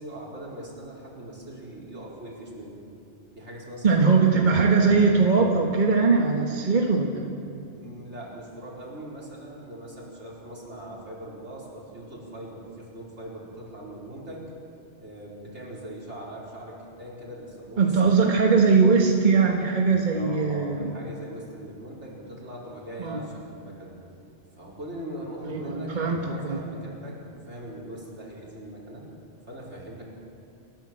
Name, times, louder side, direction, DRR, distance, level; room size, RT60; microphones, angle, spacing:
voice 1, 0.0-2.8 3.3-4.4 7.7-14.4 15.0-18.4 20.1-24.0 24.5-29.0 29.4-30.0, right 1 dB, 75° right, -4 dB, 5.0 m, -41 dB
voice 2, 3.8-7.3 17.8-20.9 23.0-23.2 25.4-26.6, right 4 dB, 45° right, 1 dB, 1.6 m, -21 dB
29.5 x 14.0 x 7.7 m, 2.6 s
omnidirectional pair, 1.2 m